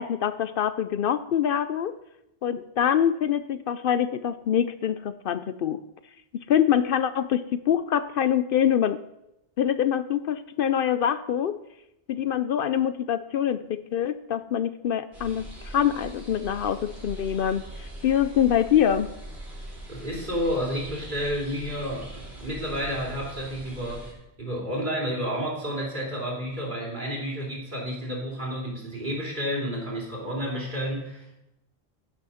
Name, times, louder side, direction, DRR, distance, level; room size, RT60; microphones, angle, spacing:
voice 1, 0.0-2.0 2.4-5.8 6.5-9.0 9.6-11.6 12.1-19.1, left 9 dB, 65° left, 12 dB, 0.7 m, -25 dB
sound 1, 15.1-24.1, right 1 dB, 90° right, 3.7 m, -41 dB
voice 2, 19.9-24.1 24.4-31.4, equal, 50° right, -4 dB, 3.4 m, -31 dB
15.0 x 6.2 x 5.7 m, 0.87 s
omnidirectional pair, 1.0 m